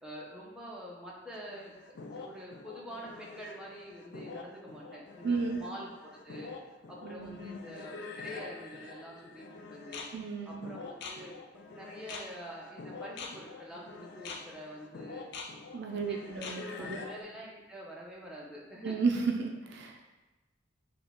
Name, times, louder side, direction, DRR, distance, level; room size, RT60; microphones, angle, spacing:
voice 1, 0.0-1.7 2.2-6.5 6.9-10.1 10.5-11.3 11.7-15.3 16.1-19.0, equal, 5° right, -5 dB, 0.8 m, -46 dB
sound 1, 1.3-17.2, left 4 dB, 60° left, 0.4 m, -45 dB
voice 2, 5.2-5.6 7.0-7.6 10.1-10.7 15.7-17.0 18.8-20.0, right 4 dB, 65° right, 3 dB, 0.4 m, -33 dB
6.2 x 2.3 x 3.6 m, 1.1 s
head